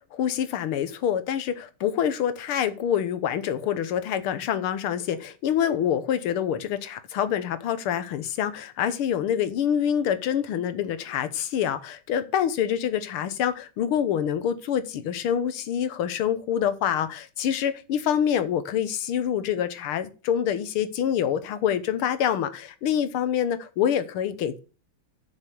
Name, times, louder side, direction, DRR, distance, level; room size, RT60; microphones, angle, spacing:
voice 1, 0.1-24.6, left 9 dB, 90° left, 1.9 m, -26 dB
7.2 x 6.3 x 6.8 m
omnidirectional pair, 2.3 m